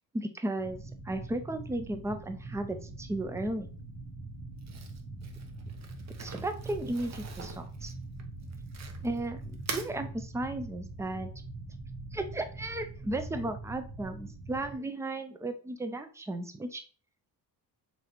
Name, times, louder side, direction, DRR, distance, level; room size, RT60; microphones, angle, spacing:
voice 1, 0.1-3.7 6.2-7.9 9.0-11.3 12.1-16.8, right 2 dB, 10° right, 7 dB, 0.3 m, -35 dB
sound 1, 0.6-14.8, right 2 dB, 85° right, 1.3 m, -43 dB
Crumpling crinkling, 4.6-9.2 9.5-9.9, right 5 dB, 40° right, 0.6 m, -43 dB
4.0 x 3.2 x 2.9 m, 0.38 s
cardioid pair, 115°, 41 cm